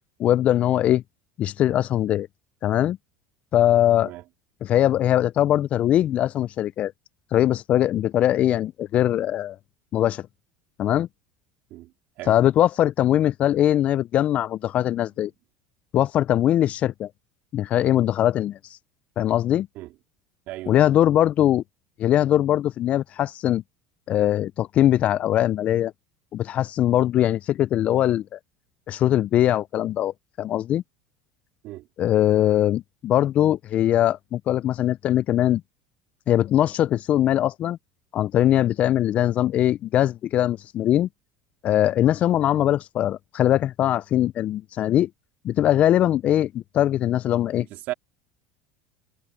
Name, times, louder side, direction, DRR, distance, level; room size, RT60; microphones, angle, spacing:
voice 1, 0.2-1.0 1.4-2.3 2.6-3.0 3.5-4.1 4.6-6.9 7.3-9.6 9.9-10.2 10.8-11.1 12.3-15.3 15.9-17.1 17.5-18.6 19.2-19.7 20.7-21.6 22.0-23.6 24.1-25.9 26.3-28.4 28.9-30.1 30.4-30.8 32.0-35.6 36.3-37.8 38.1-41.1 41.6-45.1 45.4-47.7, left 12 dB, 45° left, 0.4 m, -21 dB
voice 2, 20.5-20.9 31.6-31.9 47.6-47.9, right 17 dB, 60° right, 3.6 m, -36 dB
supercardioid pair, 100°, 3 cm